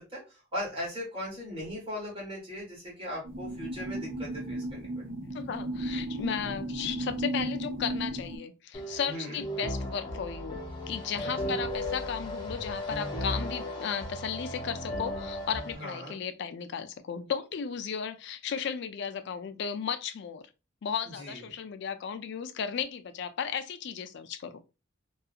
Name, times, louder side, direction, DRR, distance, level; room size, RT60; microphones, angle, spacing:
voice 1, 0.0-5.0 9.0-9.4 11.2-11.6 15.7-16.2 21.1-21.4, equal, 30° right, 1.4 m, -39 dB
sound 1, 3.2-8.4, right 1 dB, 80° right, 0.9 m, -35 dB
voice 2, 5.3-20.5 20.8-24.6, left 7 dB, 60° left, 0.3 m, -35 dB
sound 2, 8.7-15.7, left 1 dB, 25° left, 0.6 m, -35 dB
2.7 x 2.3 x 2.4 m
head